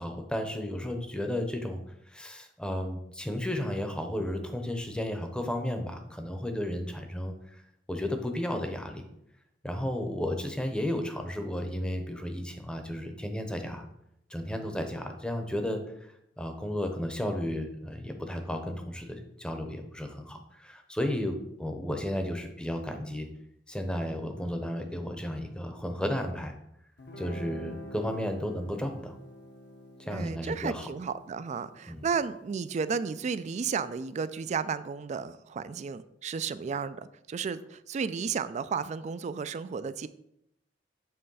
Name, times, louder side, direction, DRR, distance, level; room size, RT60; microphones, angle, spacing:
voice 1, 0.0-1.8 2.1-7.6 7.9-9.0 9.6-13.9 14.3-15.8 16.4-23.3 23.7-26.5 27.2-29.1 30.0-30.9 31.9-32.0, left 1 dB, 5° left, 5 dB, 0.7 m, -33 dB
Guitar, 27.0-34.1, equal, 65° left, 1.0 m, -48 dB
voice 2, 30.1-40.1, right 6 dB, 40° right, 14 dB, 0.3 m, -33 dB
7.6 x 3.3 x 5.5 m, 0.79 s
head